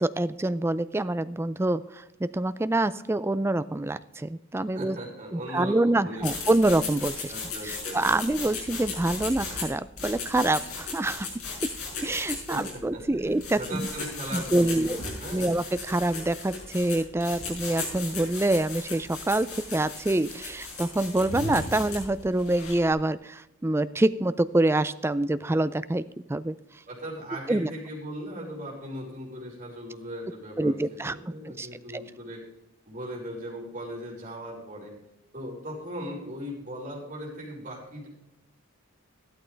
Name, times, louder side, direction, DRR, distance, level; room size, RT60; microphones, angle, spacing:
voice 1, 0.0-5.0 5.3-7.3 7.6-11.3 11.6-11.7 12.0-13.9 14.3-15.0 15.3-26.0 26.3-26.6 27.5-27.7 30.6-32.0, right 2 dB, 10° right, 14 dB, 0.3 m, -26 dB
voice 2, 4.7-6.3 7.3-8.0 12.5-15.5 26.9-32.4 32.8-34.9 35.3-38.1, equal, 35° right, -4 dB, 4.9 m, -38 dB
sound 1, 6.2-22.9, left 4 dB, 85° left, 5.4 m, -37 dB
sound 2, 21.0-22.2, left 1 dB, 70° left, 1.2 m, -36 dB
14.0 x 12.5 x 3.4 m, 0.88 s
head